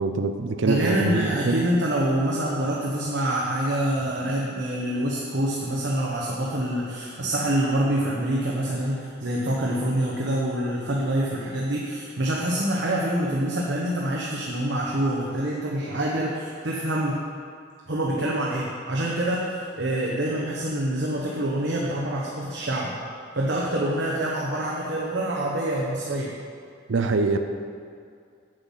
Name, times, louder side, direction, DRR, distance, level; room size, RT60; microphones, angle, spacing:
voice 1, 0.0-1.6 26.9-27.4, right 3 dB, 85° right, 7 dB, 0.5 m, -24 dB
voice 2, 0.6-17.2 17.9-23.0 23.4-26.3, right 1 dB, 70° right, -4 dB, 1.1 m, -26 dB
8.0 x 7.9 x 5.6 m, 2.3 s
head